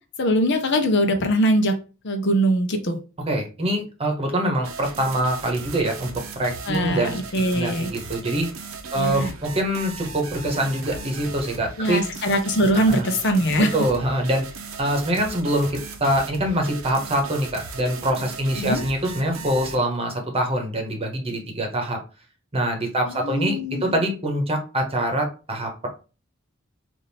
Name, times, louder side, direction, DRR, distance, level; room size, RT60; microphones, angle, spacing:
voice 1, 0.2-1.7 2.0-3.0 6.7-7.9 8.9-9.3 11.8-13.7 18.6-18.8 23.1-24.0, equal, 60° left, 6 dB, 0.8 m, -22 dB
voice 2, 3.3-6.1 6.3-7.2 7.5-8.5 8.9-12.0 12.7-13.1 13.6-14.4 14.8-22.0 22.5-25.9, right 1 dB, 30° right, 3 dB, 1.0 m, -24 dB
sound 1, 4.6-19.8, right 4 dB, 80° right, 0.7 m, -37 dB
3.5 x 2.6 x 4.1 m, 0.33 s
head